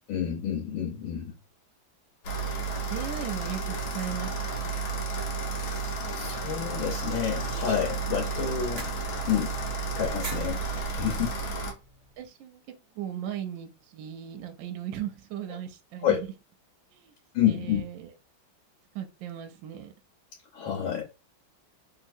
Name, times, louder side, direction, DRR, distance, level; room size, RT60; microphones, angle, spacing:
voice 1, 0.1-1.3 5.5-5.6 6.1-8.9 9.3-9.6 10.0-11.4 16.0-16.2 17.3-17.8 20.5-21.0, left 9 dB, 75° left, 1.6 m, -29 dB
sound 1, 2.2-11.7, right 3 dB, 90° left, 1.6 m, -32 dB
voice 2, 2.4-4.7 9.9-10.0 12.2-12.6 12.9-16.3 16.9-17.1 17.5-18.1 18.9-19.9, right 10 dB, 75° right, 1.2 m, -37 dB
sound 2, 6.8-12.2, right 2 dB, 45° right, 0.8 m, -47 dB
3.4 x 2.8 x 2.6 m
omnidirectional pair, 2.2 m